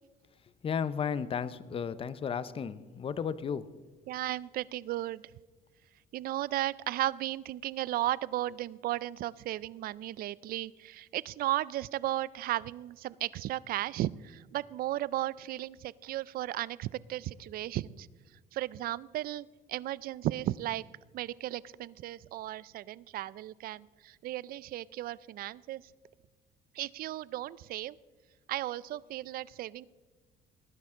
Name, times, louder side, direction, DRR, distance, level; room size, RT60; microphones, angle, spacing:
voice 1, 0.6-3.7, left 7 dB, 35° left, 16 dB, 0.6 m, -34 dB
voice 2, 4.1-5.2 6.1-18.1 18.5-20.8 21.1-25.9 26.7-28.0 28.5-29.8, right 14 dB, 60° right, 21 dB, 0.4 m, -35 dB
19.0 x 9.9 x 3.6 m, 1.4 s
cardioid pair, 110°, 17 cm